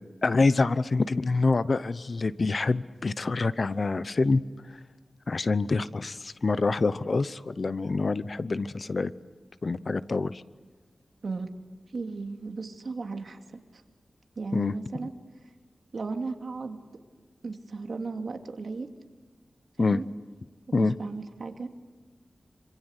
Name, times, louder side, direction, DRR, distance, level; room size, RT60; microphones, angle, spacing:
voice 1, 0.2-4.4 5.3-9.1 9.6-10.4 14.5-14.7 15.0-15.1 19.8-20.0 20.7-20.9, left 3 dB, 50° left, 16 dB, 0.8 m, -26 dB
voice 2, 11.9-13.4 13.7-13.8 14.4-15.1 15.9-16.8 17.4-18.9 19.8-20.1 20.7-21.7, right 4 dB, 65° right, 5 dB, 2.5 m, -35 dB
26.5 x 25.5 x 8.1 m, 1.4 s
wide cardioid pair, 120°, 0 cm